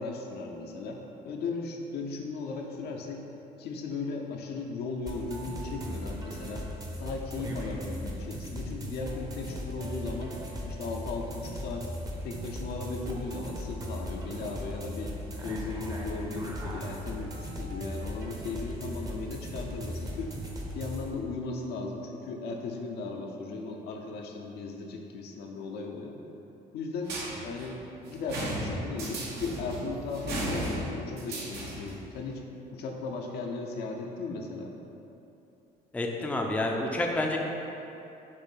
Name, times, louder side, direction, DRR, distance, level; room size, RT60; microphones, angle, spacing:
voice 1, 0.0-3.3 3.6-6.7 7.0-10.3 10.7-11.9 12.2-15.1 15.4-20.3 20.7-26.2 26.7-27.8 28.1-32.4 32.7-34.8, left 3 dB, 75° left, 1 dB, 0.7 m, -37 dB
sound 1, 5.1-21.1, equal, 20° right, 0.8 m, -38 dB
sound 2, 27.0-32.0, right 1 dB, 75° right, 1.3 m, -35 dB
voice 2, 35.9-37.4, left 1 dB, 10° left, 0 dB, 0.5 m, -29 dB
6.6 x 2.7 x 5.6 m, 3.0 s
cardioid pair, 110°, 17 cm